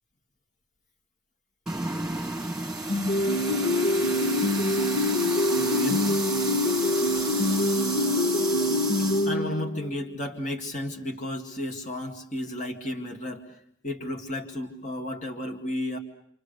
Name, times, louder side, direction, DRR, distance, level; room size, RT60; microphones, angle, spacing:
sound 1, 1.7-9.3, right 2 dB, 5° right, 2.1 m, -32 dB
sound 2, 2.9-10.1, left 1 dB, 70° left, 1.0 m, -25 dB
voice 1, 5.6-6.1 9.3-13.5 13.8-16.0, left 1 dB, 40° left, 3 dB, 2.2 m, -33 dB
27.5 x 27.0 x 6.8 m, 0.71 s
head